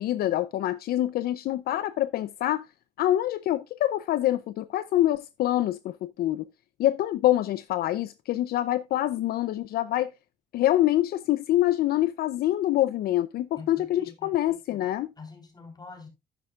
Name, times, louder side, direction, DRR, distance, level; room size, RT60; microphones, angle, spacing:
voice 1, 0.0-2.7 3.0-6.5 6.8-10.1 10.5-15.1, left 13 dB, 65° left, 0.6 m, -25 dB
voice 2, 13.6-14.4 15.2-16.1, left 4 dB, 25° left, 3.9 m, -45 dB
11.0 x 9.4 x 2.4 m
cardioid pair, 110°, 17 cm